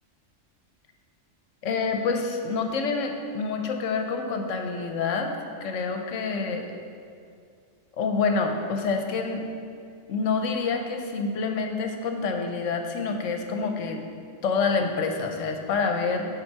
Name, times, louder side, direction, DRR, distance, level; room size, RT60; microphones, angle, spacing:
voice 1, 1.6-5.3 5.6-6.6 8.0-9.4 10.1-14.0 14.4-16.3, left 4 dB, 75° left, 4 dB, 1.0 m, -27 dB
6.9 x 5.5 x 4.6 m, 2.4 s
omnidirectional pair, 1.3 m